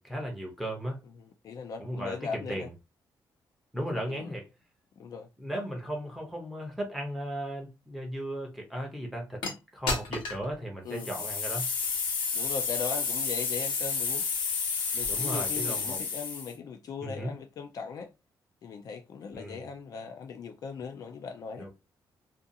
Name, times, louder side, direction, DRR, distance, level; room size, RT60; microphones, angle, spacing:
voice 1, 0.0-1.0 1.8-2.7 3.7-4.5 5.4-9.4 9.7-11.7 15.1-16.0 17.0-17.3 19.3-19.7 21.6-21.7, equal, ahead, 0.6 m, -36 dB
voice 2, 1.2-2.7 4.1-4.3 5.0-5.3 10.8-11.3 12.3-14.3 14.9-18.1 18.6-21.7, left 6 dB, 50° left, 0.4 m, -39 dB
sound 1, 9.4-9.5 9.9-10.4 10.9-16.5, left 5 dB, 85° left, 0.9 m, -31 dB
2.5 x 2.3 x 2.7 m
wide cardioid pair, 180°, 8 cm